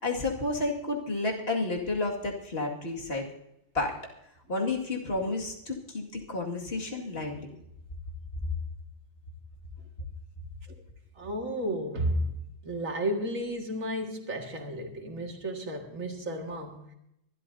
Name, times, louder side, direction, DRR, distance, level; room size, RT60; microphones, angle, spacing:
voice 1, 0.0-3.3 3.7-4.0 4.5-7.5, left 2 dB, 50° left, 2.4 m, -31 dB
voice 2, 11.2-12.3 12.6-16.9, equal, 80° right, 2.4 m, -32 dB
24.5 x 12.5 x 2.7 m
omnidirectional pair, 1.4 m